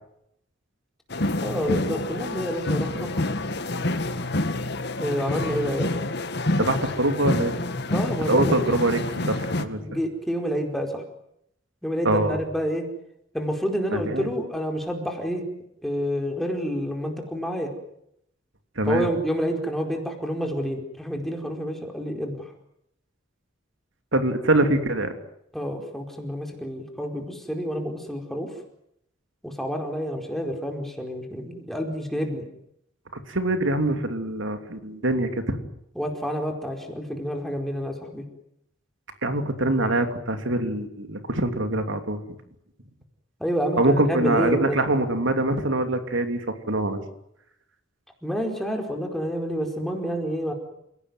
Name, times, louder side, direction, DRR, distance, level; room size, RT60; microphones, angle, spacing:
sound 1, 1.1-9.7, left 2 dB, 55° left, 1.9 m, -28 dB
voice 1, 1.4-3.1 5.0-5.9 7.9-8.6 9.8-11.0 11.8-12.9 13.3-15.4 15.8-17.7 18.9-22.5 25.5-28.5 29.4-32.4 35.9-38.2 43.4-44.8 48.2-50.5, equal, ahead, 2 dB, 4.7 m, -28 dB
voice 2, 6.6-7.6 8.3-9.8 12.0-12.4 13.9-14.3 18.8-19.1 24.1-25.1 33.3-35.6 39.2-42.2 43.8-47.0, right 1 dB, 75° right, 7 dB, 3.1 m, -24 dB
29.0 x 18.0 x 9.5 m, 0.77 s
head